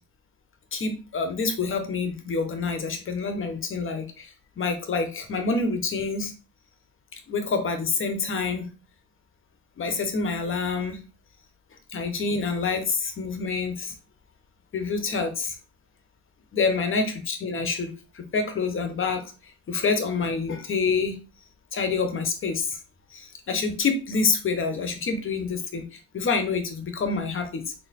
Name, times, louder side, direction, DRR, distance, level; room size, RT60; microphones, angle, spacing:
voice 1, 0.7-6.3 7.1-8.7 9.8-11.0 11.9-13.9 14.7-15.6 16.5-19.3 19.7-21.2 21.7-22.8 23.1-27.7, left 4 dB, 45° left, 7 dB, 1.0 m, -27 dB
4.2 x 2.1 x 4.1 m, 0.33 s
cardioid pair, 90°, 30 cm